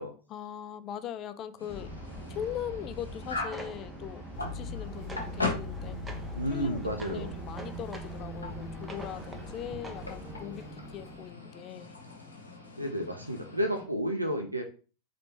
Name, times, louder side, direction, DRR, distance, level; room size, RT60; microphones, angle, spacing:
voice 1, 0.3-1.9 2.3-4.2 4.5-6.0 6.5-11.9, left 10 dB, 35° left, 0.3 m, -40 dB
sound 1, 1.6-13.8, left 3 dB, 80° left, 1.0 m, -41 dB
sound 2, 1.7-10.4, right 1 dB, 10° right, 0.7 m, -43 dB
sound 3, 4.3-11.3, left 1 dB, 10° left, 1.1 m, -42 dB
voice 2, 6.3-7.3 12.8-14.6, equal, 85° right, 0.5 m, -31 dB
3.9 x 3.2 x 2.8 m
figure-of-eight pair, 90°, 0 cm